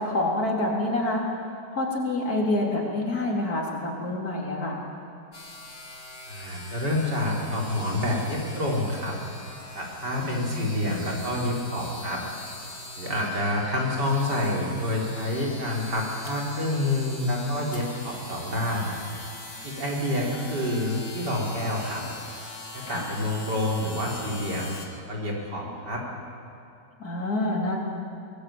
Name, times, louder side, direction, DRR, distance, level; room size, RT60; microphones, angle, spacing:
voice 1, 0.0-4.8 10.2-10.7 22.9-23.1 27.0-27.8, left 2 dB, 60° left, -2 dB, 4.2 m, -27 dB
sound 1, 5.3-24.9, left 1 dB, 35° left, 2.7 m, -42 dB
voice 2, 6.3-9.1 9.8-12.2 13.0-18.9 19.6-22.0 22.7-24.7 25.1-26.0, left 1 dB, 85° right, -2 dB, 4.9 m, -28 dB
23.5 x 18.5 x 8.8 m, 2.6 s
omnidirectional pair, 1.8 m